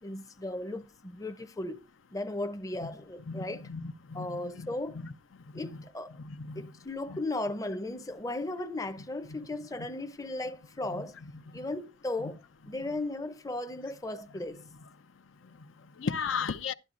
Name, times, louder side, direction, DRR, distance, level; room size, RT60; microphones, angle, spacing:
voice 1, 0.0-3.6 4.1-5.0 5.5-6.2 6.6-11.2 11.5-12.4 12.7-14.6, left 2 dB, 15° left, 0.6 m, -36 dB
voice 2, 3.3-4.3 5.0-5.1 6.4-6.6 7.1-7.2 16.0-16.7, left 5 dB, 75° left, 0.6 m, -34 dB
11.5 x 11.0 x 2.5 m
head